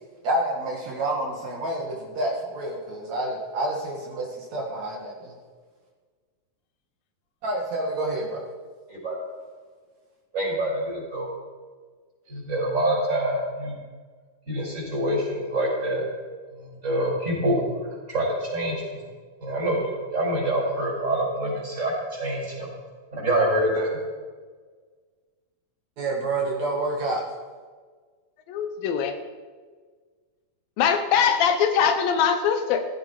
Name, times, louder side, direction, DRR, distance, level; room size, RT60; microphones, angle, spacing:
voice 1, 0.2-5.3 7.4-8.4 26.0-27.2, right 2 dB, 55° right, -1 dB, 3.1 m, -28 dB
voice 2, 10.3-11.3 12.3-13.8 14.5-16.0 16.6-17.6 18.1-18.8 19.4-22.7 23.1-23.9, right 1 dB, 20° right, -4 dB, 5.8 m, -26 dB
voice 3, 28.5-29.2 30.8-32.9, left 7 dB, 85° left, 8 dB, 2.8 m, -22 dB
15.5 x 14.5 x 4.9 m, 1.5 s
omnidirectional pair, 4.0 m